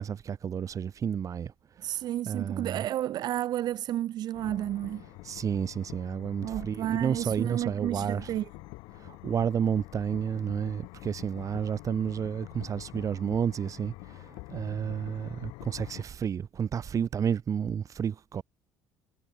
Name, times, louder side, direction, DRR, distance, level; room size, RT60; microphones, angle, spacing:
voice 1, 0.0-1.5 1.8-2.0 2.3-2.8 5.2-8.3 9.0-18.4, right 8 dB, 45° right, 2.0 m, -31 dB
voice 2, 1.8-5.0 6.4-8.5, right 13 dB, 60° right, 1.6 m, -31 dB
sound 1, 4.3-16.0, left 25 dB, 75° left, 5.9 m, -46 dB
supercardioid pair, 75°, 8 cm